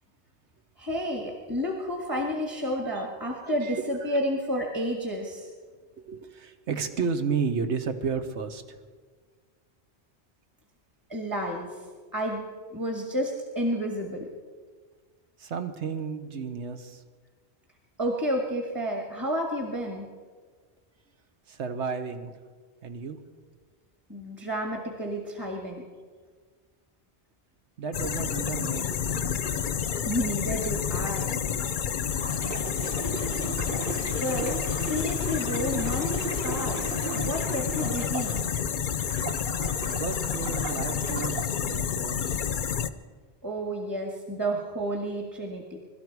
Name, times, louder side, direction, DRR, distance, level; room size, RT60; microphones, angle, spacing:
voice 1, 0.8-5.5 11.1-11.8 12.1-12.4 12.7-14.2 18.0-20.1 24.1-25.8 30.0-31.4 33.6-33.9 34.2-38.4 43.4-45.8, equal, 20° right, 2 dB, 1.6 m, -31 dB
voice 2, 3.4-3.8 6.0-8.8 15.4-17.0 21.5-22.3 22.8-23.2 27.8-29.4 32.5-33.0 40.0-42.4, right 5 dB, 85° right, 8 dB, 1.3 m, -33 dB
sound 1, 27.9-42.9, left 8 dB, 55° left, 0.7 m, -29 dB
sound 2, 32.1-38.6 39.0-41.5 42.1-42.4, right 6 dB, 60° right, 0.8 m, -38 dB
22.5 x 12.5 x 4.7 m, 1.5 s
omnidirectional pair, 1.1 m